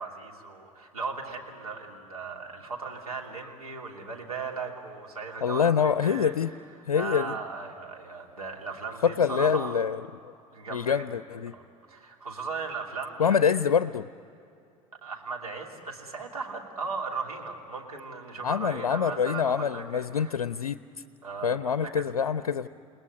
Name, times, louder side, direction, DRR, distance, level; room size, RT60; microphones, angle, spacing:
voice 1, 0.0-6.3 6.9-9.8 10.5-11.0 11.5-11.6 11.9-13.4 15.0-20.3 21.2-22.3, right 4 dB, 85° right, 0 dB, 3.1 m, -37 dB
voice 2, 5.4-6.5 6.8-7.3 9.0-10.0 10.7-11.5 13.2-14.1 18.4-20.8 21.4-22.7, left 7 dB, 85° left, 14 dB, 0.5 m, -25 dB
29.5 x 19.5 x 9.7 m, 2.7 s
figure-of-eight pair, 70°, 18 cm